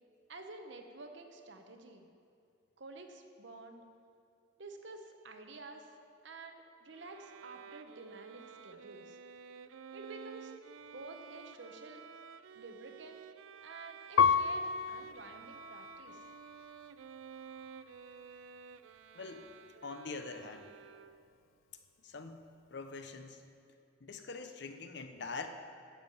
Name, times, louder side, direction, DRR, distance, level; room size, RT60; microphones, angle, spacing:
voice 1, 0.3-2.1 2.8-3.8 4.6-5.9 6.2-9.2 9.9-10.6 10.9-12.0 12.5-13.2 13.6-16.2, right 3 dB, 65° right, 5 dB, 0.9 m, -50 dB
Bowed string instrument, 6.9-21.4, right 7 dB, 85° right, 0.4 m, -52 dB
Piano, 14.2-16.9 17.5-18.3, left 6 dB, 85° left, 0.3 m, -32 dB
voice 2, 19.1-19.5 19.8-20.7 22.0-22.4 22.7-23.4 24.0-25.5, left 4 dB, 60° left, 7 dB, 0.7 m, -44 dB
12.0 x 7.4 x 5.4 m, 2.5 s
head